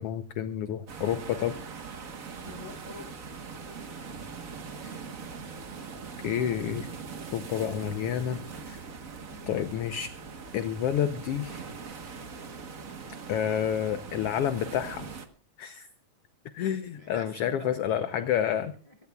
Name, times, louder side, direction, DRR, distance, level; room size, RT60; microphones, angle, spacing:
voice 1, 0.0-1.5 4.8-4.9 6.2-6.9 7.3-8.8 9.5-10.1 10.5-11.6 13.3-15.1 15.6-15.9 16.5-18.7, left 9 dB, 70° left, 10 dB, 1.5 m, -29 dB
sound 1, 0.9-15.3, right 5 dB, 50° right, 1.0 m, -41 dB
voice 2, 2.4-3.2 9.3-9.7 17.0-17.7 18.9-19.1, left 2 dB, 30° left, 5 dB, 0.6 m, -47 dB
24.0 x 17.5 x 2.4 m, 0.38 s
omnidirectional pair, 3.4 m